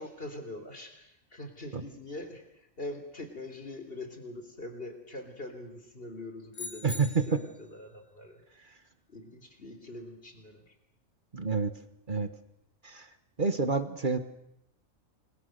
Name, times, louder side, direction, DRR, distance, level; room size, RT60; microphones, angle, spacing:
voice 1, 0.0-2.4 2.8-8.4 9.1-10.7, left 2 dB, 45° left, 6 dB, 3.7 m, -43 dB
sound 1, 6.5-7.6, left 3 dB, 65° left, 4.9 m, -42 dB
voice 2, 6.8-7.4 11.3-11.7 12.1-12.3 12.8-13.1 13.4-14.2, right 4 dB, 40° right, 10 dB, 1.4 m, -28 dB
29.0 x 22.0 x 6.6 m, 0.83 s
omnidirectional pair, 1.4 m